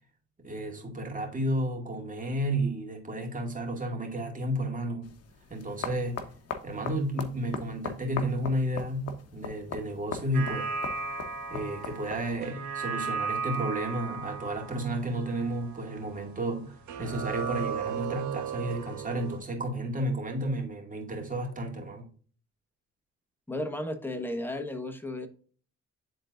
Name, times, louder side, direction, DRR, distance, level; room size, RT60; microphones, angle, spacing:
voice 1, 0.4-5.1 5.5-6.2 6.6-10.7 11.5-22.1, right 1 dB, 25° right, 2.2 m, -32 dB
sound 1, 5.0-12.4, left 5 dB, 55° left, 1.0 m, -40 dB
sound 2, 10.3-16.6 16.9-19.4, right 5 dB, 70° right, 1.4 m, -36 dB
voice 2, 23.5-25.3, left 1 dB, 5° left, 1.2 m, -34 dB
10.5 x 3.9 x 2.5 m
cardioid pair, 90°, 30 cm